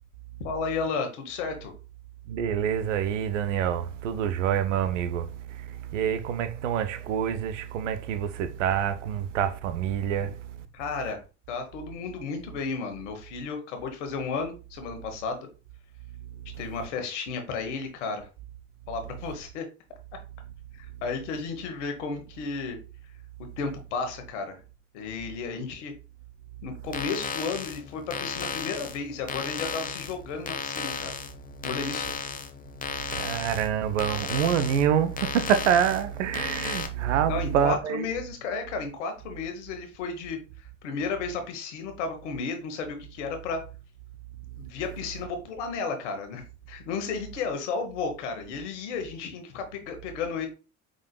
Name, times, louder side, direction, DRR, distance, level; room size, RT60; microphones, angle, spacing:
voice 1, 0.4-1.7 10.7-11.2 11.5-15.5 16.6-18.3 18.9-19.7 20.8-22.8 23.6-24.6 24.9-25.9 26.6-31.1 31.6-32.1 37.3-43.6 44.6-50.5, left 5 dB, 75° left, 1.1 m, -33 dB
voice 2, 2.3-10.5 33.1-38.1, right 9 dB, 80° right, 0.6 m, -26 dB
sound 1, 26.8-36.9, left 6 dB, 25° left, 0.7 m, -35 dB
5.1 x 3.8 x 2.2 m
hypercardioid pair, 65°, 36 cm